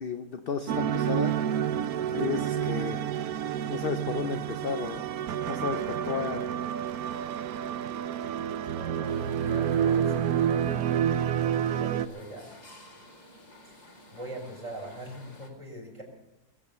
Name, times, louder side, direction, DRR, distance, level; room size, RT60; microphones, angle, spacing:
voice 1, 0.0-1.4 2.1-3.0 3.7-5.0 5.5-6.5, left 6 dB, 45° left, 7 dB, 0.8 m, -33 dB
sound 1, 0.7-12.1, right 9 dB, 70° right, 1.1 m, -29 dB
voice 2, 8.7-12.5 13.6-16.0, right 1 dB, 20° right, 0 dB, 5.7 m, -43 dB
sound 2, 9.1-15.5, left 1 dB, 25° left, 2.3 m, -53 dB
22.0 x 8.8 x 7.0 m, 1.0 s
omnidirectional pair, 1.8 m